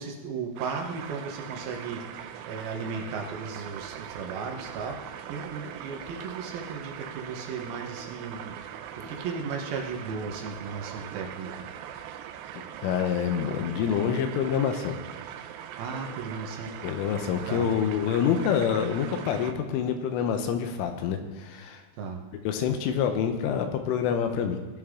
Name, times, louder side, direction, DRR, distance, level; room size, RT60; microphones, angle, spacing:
voice 1, 0.0-8.6 9.0-11.6 15.8-16.7 17.5-17.8 22.0-22.2, right 5 dB, 65° right, 2 dB, 2.5 m, -36 dB
sound 1, 0.6-19.5, right 9 dB, 90° right, 2.5 m, -41 dB
voice 2, 12.8-15.0 16.8-21.8 22.5-24.6, left 8 dB, 85° left, 6 dB, 3.5 m, -27 dB
19.0 x 9.0 x 3.8 m, 1.2 s
omnidirectional pair, 5.6 m